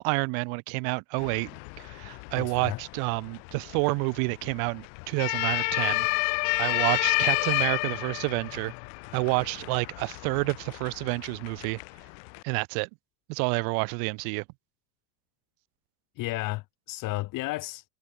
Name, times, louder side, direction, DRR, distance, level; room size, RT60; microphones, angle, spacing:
voice 1, 0.0-1.5 1.8-6.1 6.6-8.7 9.1-11.8 12.4-12.9 13.3-14.4, right 40 dB or more, 60° right, 1.2 m, -29 dB
sound 1, 1.2-12.4, left 40 dB or more, 65° left, 2.5 m, -31 dB
voice 2, 2.4-2.8 16.2-17.8, left 19 dB, 50° left, 7.3 m, -33 dB
supercardioid pair, 145°, 41 cm